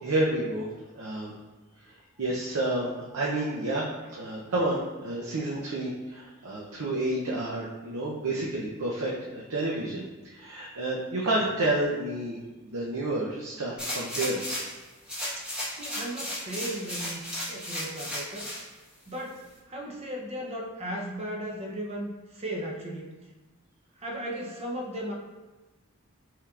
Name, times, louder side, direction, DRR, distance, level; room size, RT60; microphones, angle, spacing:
voice 1, 0.0-0.6 0.9-1.3 2.2-12.4 12.6-14.6, right 1 dB, 90° right, -4 dB, 0.7 m, -30 dB
sound 1, 13.8-14.8 15.1-18.6 19.1-19.2, equal, 5° right, 1.2 m, -34 dB
voice 2, 15.7-18.5 19.1-19.4 19.7-23.1 24.0-25.1, right 1 dB, 30° right, -1 dB, 0.7 m, -36 dB
5.5 x 3.7 x 2.4 m, 1.2 s
head